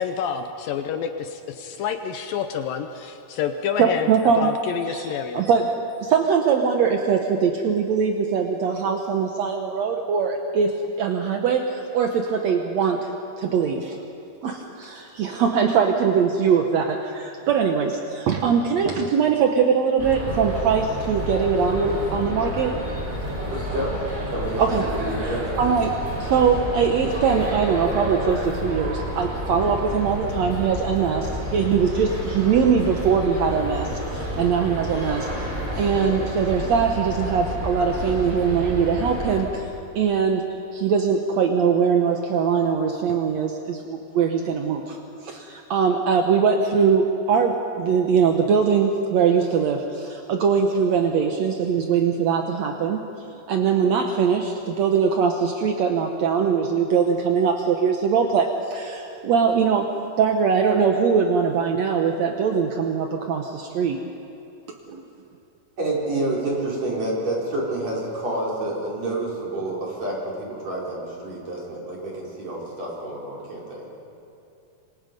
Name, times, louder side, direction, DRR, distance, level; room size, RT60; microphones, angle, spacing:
voice 1, 0.0-4.1 4.4-5.4, left 7 dB, 75° left, 7 dB, 2.3 m, -28 dB
voice 2, 3.8-4.5 4.9-5.6 6.0-13.1 13.4-14.0 14.4-22.8 24.6-24.8 25.2-25.3 25.6-25.9 26.2-35.5 35.8-39.7 39.9-40.4 40.7-45.0 45.2-53.1 53.5-59.9 60.2-64.0 64.9-65.0, right 6 dB, 75° right, 3 dB, 1.6 m, -22 dB
sound 1, 20.0-39.4, equal, 10° right, 4.8 m, -30 dB
voice 3, 23.4-24.0 24.3-25.6 65.8-73.9, right 2 dB, 40° right, -4 dB, 5.5 m, -28 dB
27.5 x 24.5 x 5.3 m, 2.7 s
omnidirectional pair, 4.5 m